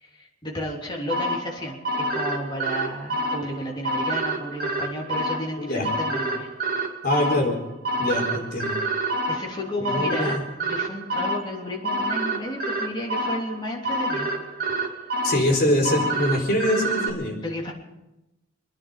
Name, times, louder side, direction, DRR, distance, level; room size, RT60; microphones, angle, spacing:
voice 1, 0.0-6.5 9.3-10.4 10.6-14.3 17.4-17.7, left 1 dB, 25° left, -2 dB, 3.3 m, -32 dB
sound 1, 1.1-17.1, right 1 dB, 50° right, 2.6 m, -28 dB
voice 2, 5.6-5.9 7.0-7.6 8.0-8.7 9.8-10.4 15.2-17.3, left 1 dB, 50° left, -1 dB, 4.4 m, -23 dB
27.0 x 10.5 x 5.1 m, 0.94 s
head